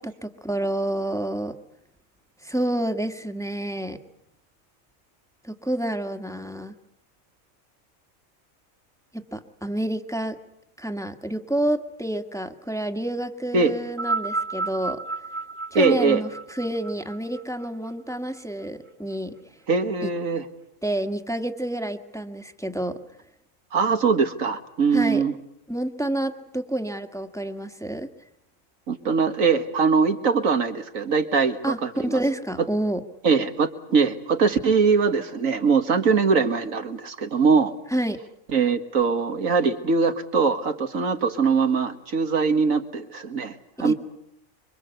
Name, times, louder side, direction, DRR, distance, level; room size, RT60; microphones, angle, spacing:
voice 1, 0.0-1.5 2.4-4.0 5.4-6.7 9.1-10.4 10.8-15.0 15.7-19.3 20.0-20.1 20.8-23.0 24.9-25.2 25.7-28.1 31.6-33.0 37.9-38.2 43.8-43.9, right 1 dB, ahead, 7 dB, 1.5 m, -28 dB
sound 1, 13.9-18.4 19.3-19.4, right 3 dB, 20° right, 1.4 m, -31 dB
voice 2, 15.7-16.2 19.7-20.4 23.7-25.3 28.9-32.2 33.2-37.7 38.5-43.9, right 5 dB, 80° right, 7 dB, 2.2 m, -22 dB
26.0 x 24.5 x 8.2 m, 0.78 s
omnidirectional pair, 1.4 m